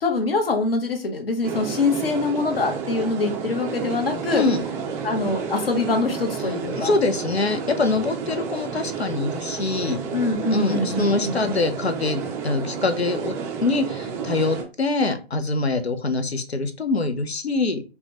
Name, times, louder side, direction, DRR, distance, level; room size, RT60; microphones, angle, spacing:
voice 1, 0.0-4.4 5.0-6.9 10.1-11.5, left 3 dB, 65° left, 4 dB, 1.3 m, -24 dB
sound 1, 1.4-14.6, right 6 dB, 10° right, 0.4 m, -31 dB
voice 2, 4.3-4.6 6.7-10.0 10.5-13.3 13.6-17.8, left 3 dB, 85° left, 8 dB, 0.8 m, -24 dB
5.2 x 2.3 x 2.9 m, 0.32 s
figure-of-eight pair, 125°, 31 cm